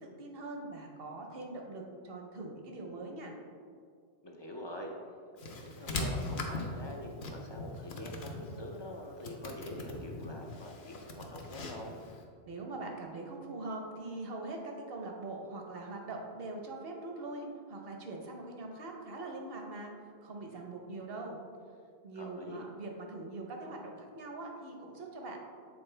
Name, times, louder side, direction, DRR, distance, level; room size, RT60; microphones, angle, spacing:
voice 1, 0.0-3.3 12.5-19.9 20.2-21.4 22.0-25.4, right 2 dB, 60° right, 1 dB, 1.0 m, -42 dB
voice 2, 4.2-4.9 5.4-12.0 22.1-22.7, left 1 dB, 35° left, 0 dB, 0.4 m, -45 dB
sound 1, 5.4-12.2, left 2 dB, 55° left, 0.8 m, -40 dB
7.2 x 4.1 x 3.2 m, 2.2 s
omnidirectional pair, 1.1 m